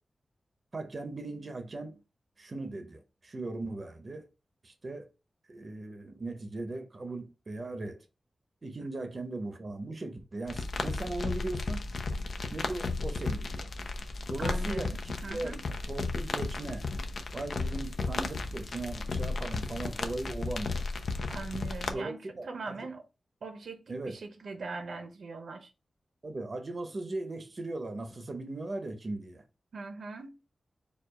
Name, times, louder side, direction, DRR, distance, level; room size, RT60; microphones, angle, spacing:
voice 1, 0.7-2.0 2.4-4.3 4.6-5.0 5.5-8.0 8.6-11.9 12.5-13.7 14.3-15.6 15.9-16.9 17.3-20.9 21.9-22.8 23.9-24.2 26.2-29.4, right 2 dB, 35° right, 0.7 m, -38 dB
voice 2, 8.8-9.2 14.4-15.6 21.3-23.0 23.4-25.7 29.7-30.3, right 4 dB, 75° right, 0.8 m, -41 dB
sound 1, 10.5-21.9, left 3 dB, 60° left, 0.6 m, -34 dB
4.7 x 2.4 x 4.7 m
wide cardioid pair, 155°, 0 cm